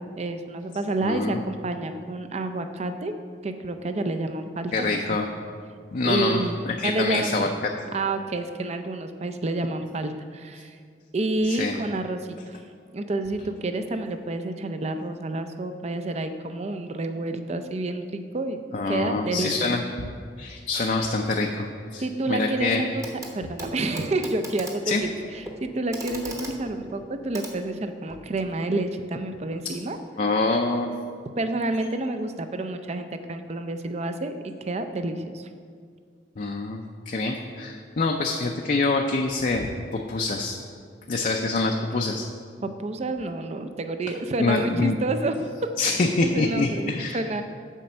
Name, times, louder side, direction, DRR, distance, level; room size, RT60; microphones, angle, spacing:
voice 1, 0.2-3.1 3.4-5.0 6.0-7.3 7.9-10.8 11.1-12.6 12.9-18.6 18.9-19.7 22.0-23.1 23.3-30.0 31.4-35.5 42.6-45.7 46.2-47.4, right 2 dB, 35° right, 8 dB, 0.5 m, -29 dB
voice 2, 1.0-1.4 4.7-5.3 5.9-6.4 6.7-7.7 11.5-11.8 18.7-20.1 20.4-22.8 24.9-25.0 30.2-30.9 36.4-40.6 41.1-42.3 44.4-45.0 45.8-47.2, left 3 dB, 45° left, 2 dB, 0.5 m, -25 dB
Clock, 23.0-23.3 23.6-28.3 29.5-29.6, right 1 dB, 20° right, 0.9 m, -40 dB
7.3 x 5.2 x 6.8 m, 2.1 s
head